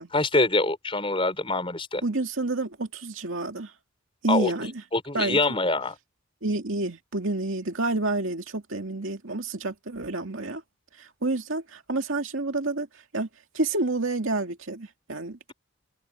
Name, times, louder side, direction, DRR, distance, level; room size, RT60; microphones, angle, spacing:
voice 1, 0.0-2.0 4.3-4.5 4.9-5.9, left 2 dB, 25° left, 4.7 m, -25 dB
voice 2, 2.0-3.7 4.2-4.7 5.1-5.4 6.4-10.6 11.0-12.9 13.1-13.3 13.5-15.5, right 2 dB, 65° right, 2.4 m, -29 dB
open air
head